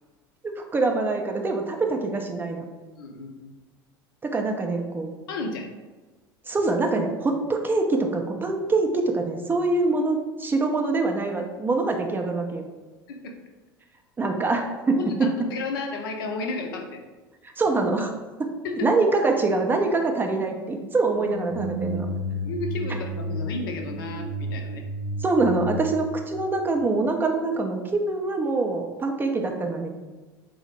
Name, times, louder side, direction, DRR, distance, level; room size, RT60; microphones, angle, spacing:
voice 1, 0.4-2.6 4.2-5.1 6.5-12.6 14.2-15.3 17.6-18.1 18.4-18.5 18.8-22.1 25.2-29.9, right 3 dB, 15° right, 2 dB, 0.4 m, -24 dB
voice 2, 3.0-3.5 5.3-5.7 13.1-13.4 14.9-17.0 18.6-18.9 22.4-24.8, left 3 dB, 60° left, 4 dB, 0.5 m, -33 dB
sound 1, 21.1-27.1, equal, 65° right, 0.6 m, -32 dB
4.0 x 2.0 x 3.0 m, 1.3 s
figure-of-eight pair, 75°, 13 cm